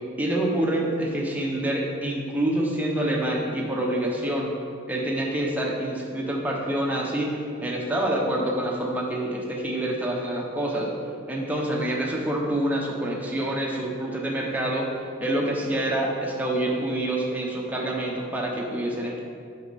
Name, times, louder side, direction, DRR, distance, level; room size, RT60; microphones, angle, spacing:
voice 1, 0.2-4.5 4.9-10.9 11.3-14.9 15.2-19.2, right 1 dB, 10° right, -2 dB, 0.9 m, -27 dB
7.7 x 5.4 x 4.2 m, 2.3 s
head